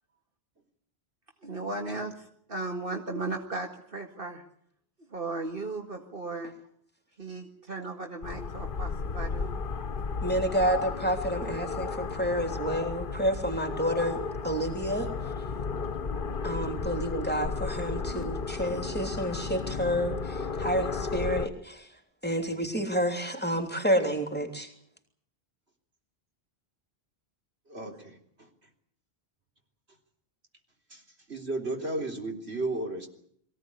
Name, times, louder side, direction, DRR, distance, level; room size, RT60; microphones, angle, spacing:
voice 1, 1.4-4.4 5.1-6.6 7.2-9.6 27.8-27.9, right 2 dB, 60° right, 3 dB, 2.1 m, -36 dB
sound 1, 8.2-21.5, left 4 dB, 55° left, 1.3 m, -34 dB
voice 2, 10.2-15.1 16.4-21.9 22.2-24.7, equal, 10° left, 4 dB, 3.1 m, -29 dB
voice 3, 27.7-28.5 30.9-31.0 31.3-33.1, right 2 dB, 85° right, 2 dB, 4.1 m, -34 dB
23.0 x 16.5 x 9.8 m, 0.67 s
omnidirectional pair, 1.1 m